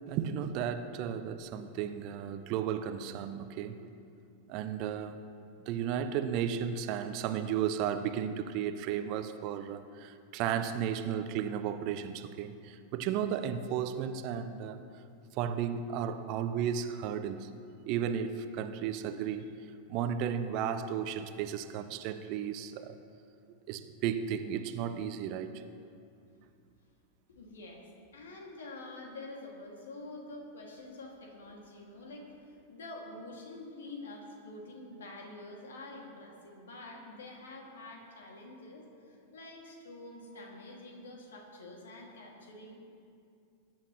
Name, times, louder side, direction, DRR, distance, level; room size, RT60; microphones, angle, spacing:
voice 1, 0.1-3.8 4.5-5.3 5.7-14.8 15.3-17.5 17.9-19.5 19.9-23.0 23.7-25.6, right 8 dB, 40° right, 10 dB, 0.6 m, -34 dB
voice 2, 27.3-42.8, left 2 dB, 65° left, 0 dB, 2.2 m, -47 dB
20.5 x 10.5 x 3.1 m, 2.5 s
figure-of-eight pair, 90°, 0 cm